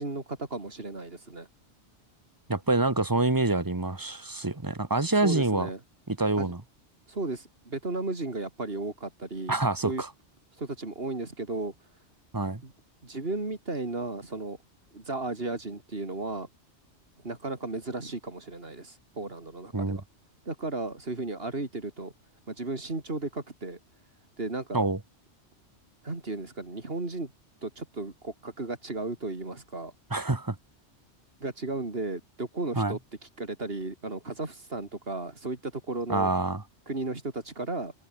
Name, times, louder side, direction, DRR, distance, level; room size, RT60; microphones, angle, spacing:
voice 1, 0.0-1.5 5.2-5.8 6.4-6.5 7.1-9.5 9.8-10.0 10.6-11.7 12.6-12.7 13.0-14.6 14.9-16.5 17.2-20.0 20.5-22.1 22.5-23.8 24.4-24.9 26.0-27.3 27.6-29.9 31.4-33.0 33.4-36.3 36.9-37.9, right 2 dB, 55° right, 3.5 m, -34 dB
voice 2, 2.5-5.7 6.1-6.6 9.5-10.1 12.3-12.6 19.7-20.0 24.7-25.0 30.1-30.5 32.8-32.9 36.1-36.6, right 2 dB, 20° right, 1.4 m, -26 dB
omnidirectional pair, 1.2 m